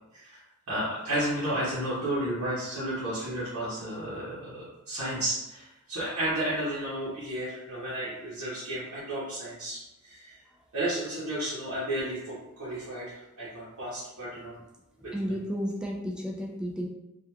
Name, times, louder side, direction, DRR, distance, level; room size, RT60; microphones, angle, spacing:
voice 1, 0.7-10.3 10.7-14.5 15.0-15.4, right 1 dB, 70° right, -11 dB, 0.8 m, -32 dB
voice 2, 15.1-16.9, equal, 5° right, -1 dB, 0.3 m, -32 dB
2.8 x 2.4 x 2.2 m, 0.92 s
head